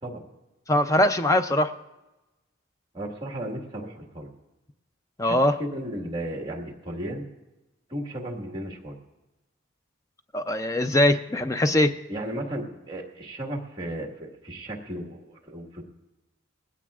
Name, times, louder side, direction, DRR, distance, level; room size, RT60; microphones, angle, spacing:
voice 1, 0.7-1.7 5.2-5.6 10.3-11.9, left 1 dB, 15° left, 9 dB, 0.4 m, -21 dB
voice 2, 2.9-4.3 5.2-7.2 7.9-9.0 12.1-15.8, right 1 dB, 25° right, 1 dB, 1.7 m, -35 dB
20.0 x 16.5 x 2.4 m, 1.0 s
head